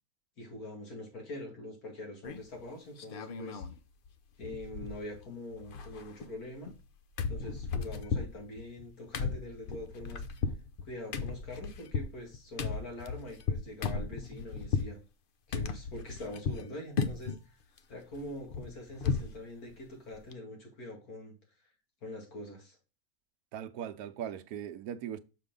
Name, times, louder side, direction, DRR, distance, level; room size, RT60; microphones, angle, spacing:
voice 1, 0.4-3.6 4.4-6.7 7.3-10.2 10.8-15.0 15.5-17.6 17.9-21.3 22.0-22.8, left 1 dB, 80° left, 2.7 m, -44 dB
sound 1, 2.2-2.6 3.0-3.8 4.1-4.2 4.4-5.3 5.5-6.9 7.2-14.9 15.5-16.7 17.0-17.4 17.8-19.4 19.7-19.8 20.1-20.3, left 5 dB, 50° left, 0.6 m, -35 dB
voice 2, 23.5-25.2, right 9 dB, 85° right, 1.2 m, -39 dB
6.8 x 4.6 x 3.7 m
omnidirectional pair, 1.6 m